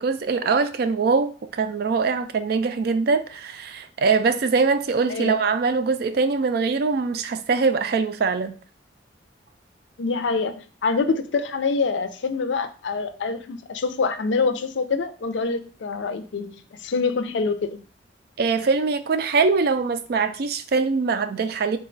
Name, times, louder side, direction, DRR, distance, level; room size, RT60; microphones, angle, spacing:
voice 1, 0.0-8.6 18.4-21.8, right 4 dB, 60° right, 0.4 m, -22 dB
voice 2, 10.0-16.6 16.8-17.8, left 4 dB, 80° left, 0.4 m, -25 dB
4.0 x 2.2 x 3.8 m
head